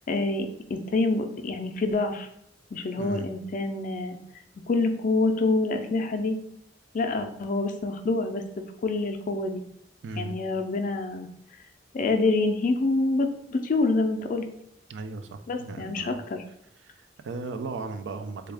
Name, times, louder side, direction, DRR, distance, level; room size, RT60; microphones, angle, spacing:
voice 1, 0.1-2.3 2.7-4.2 4.7-6.4 6.9-8.4 8.8-9.6 10.2-11.3 11.9-14.5 15.5-16.4, left 3 dB, 50° left, 6 dB, 0.4 m, -26 dB
voice 2, 3.0-3.3 10.0-10.4 14.9-16.2 17.0-18.5, right 3 dB, 75° right, 8 dB, 0.3 m, -36 dB
3.5 x 2.3 x 3.3 m, 0.71 s
head